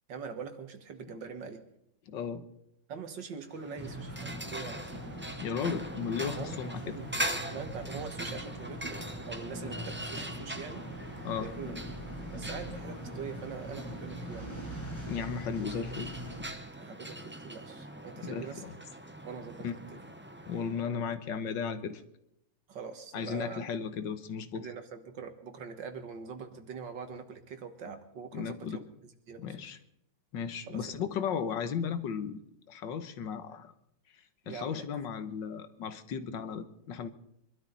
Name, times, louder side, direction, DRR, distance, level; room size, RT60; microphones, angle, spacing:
voice 1, 0.1-1.6 2.9-4.8 6.4-7.1 7.5-11.0 11.4-11.8 12.3-14.5 16.8-18.6 19.2-19.7 22.7-23.6 24.5-28.8 29.3-29.8 30.7-30.9 34.4-34.9, right 5 dB, 80° right, 7 dB, 2.3 m, -43 dB
voice 2, 2.1-2.5 5.4-7.0 11.2-11.5 15.1-16.1 18.2-18.8 19.6-19.8 20.5-22.0 23.1-24.7 28.3-28.8 29.4-29.8 30.3-32.4 32.7-33.7 34.5-37.1, left 6 dB, 85° left, 10 dB, 1.8 m, -35 dB
sound 1, 3.5-20.9, right 1 dB, 10° right, 0.7 m, -42 dB
sound 2, 3.8-16.4, equal, 5° left, 6.7 m, -42 dB
24.5 x 12.5 x 4.0 m, 0.81 s
omnidirectional pair, 1.9 m